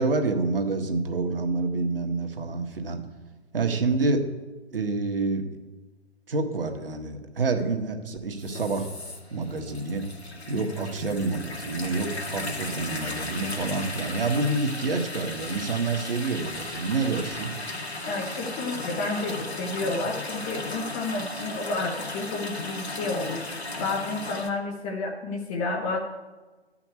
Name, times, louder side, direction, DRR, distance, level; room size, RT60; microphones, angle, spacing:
voice 1, 0.0-3.0 3.5-4.2 4.7-5.4 6.3-8.9 9.3-10.1 10.5-17.5, right 3 dB, 60° right, 4 dB, 1.7 m, -27 dB
sound 1, 8.4-24.5, left 2 dB, 80° left, 2.1 m, -36 dB
voice 2, 18.0-26.0, left 3 dB, 10° left, 1 dB, 0.6 m, -31 dB
12.0 x 5.9 x 8.2 m, 1.3 s
figure-of-eight pair, 130°, 32 cm